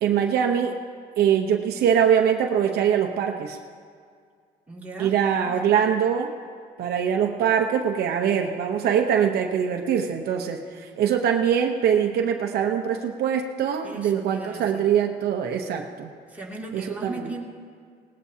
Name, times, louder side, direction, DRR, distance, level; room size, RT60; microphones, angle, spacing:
voice 1, 0.0-0.8 1.2-3.6 5.0-6.3 6.8-16.1 16.7-17.3, right 8 dB, 70° right, 3 dB, 0.9 m, -23 dB
voice 2, 4.7-5.1 5.4-5.8 13.8-14.9 16.3-17.4, right 2 dB, 10° right, -5 dB, 2.6 m, -38 dB
19.0 x 17.0 x 2.8 m, 2.1 s
cardioid pair, 110°, 17 cm